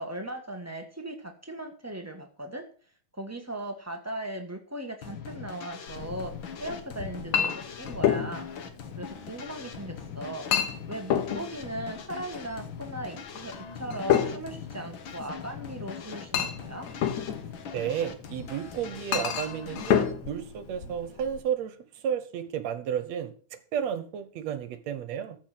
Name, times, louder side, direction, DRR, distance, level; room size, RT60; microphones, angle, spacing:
voice 1, 0.0-2.7 3.1-6.3 6.6-8.5 9.0-16.9, right 1 dB, 15° right, 4 dB, 0.5 m, -38 dB
sound 1, 5.0-20.1, left 7 dB, 50° left, 1.6 m, -42 dB
Chink clink, 5.9-21.4, left 9 dB, 70° left, 2.4 m, -31 dB
voice 2, 17.7-21.7 22.0-23.3 23.7-25.4, right 9 dB, 65° right, 11 dB, 2.2 m, -32 dB
14.5 x 5.2 x 7.8 m, 0.42 s
omnidirectional pair, 3.4 m